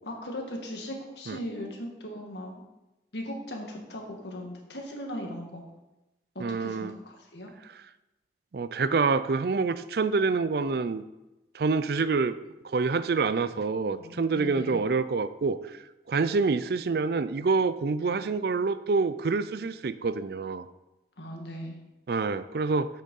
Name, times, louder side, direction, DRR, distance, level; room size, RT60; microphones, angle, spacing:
voice 1, 0.0-2.6 3.1-5.6 6.4-7.5 14.0-14.8 21.2-21.8, equal, 70° left, 2 dB, 1.8 m, -38 dB
voice 2, 6.4-6.9 8.5-11.0 11.5-12.3 12.6-15.8 16.1-20.7 22.1-22.9, right 4 dB, 55° right, 14 dB, 0.4 m, -27 dB
8.3 x 6.5 x 5.3 m, 0.98 s
head